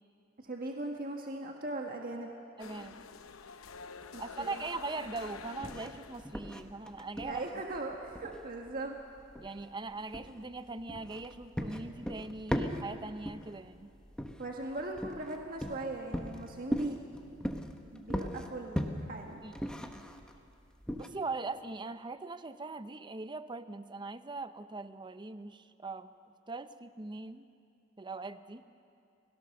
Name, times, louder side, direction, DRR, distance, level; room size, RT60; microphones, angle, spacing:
voice 1, 0.4-2.3 4.1-4.6 7.2-9.0 14.4-17.0 17.9-19.4, right 2 dB, 45° right, 1 dB, 1.5 m, -39 dB
sound 1, 2.6-6.4, left 5 dB, 85° left, 0.8 m, -47 dB
voice 2, 2.6-3.0 4.2-7.4 9.4-13.9 19.4-19.9 21.0-26.1 26.5-27.5 28.0-28.6, right 3 dB, 25° right, 12 dB, 0.7 m, -41 dB
sound 2, 4.0-21.1, equal, 5° left, 1.2 m, -39 dB
29.0 x 17.0 x 6.6 m, 2.5 s
head